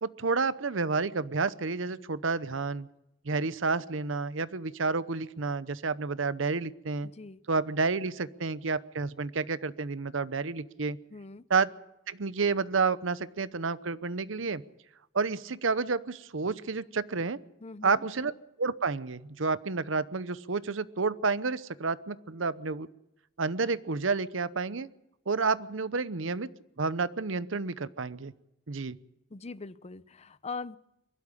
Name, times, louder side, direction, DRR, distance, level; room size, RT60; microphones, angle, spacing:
voice 1, 0.0-2.9 3.2-7.1 7.5-11.0 11.5-11.7 12.1-14.6 15.1-17.4 17.8-18.3 18.6-22.9 23.4-24.9 25.3-26.5 26.8-28.3 28.7-29.0, right 4 dB, 70° right, 16 dB, 0.8 m, -30 dB
voice 2, 7.0-7.4 11.1-11.4 17.6-18.0 29.3-30.8, left 4 dB, 35° left, 16 dB, 0.7 m, -41 dB
23.0 x 12.5 x 9.7 m, 0.84 s
head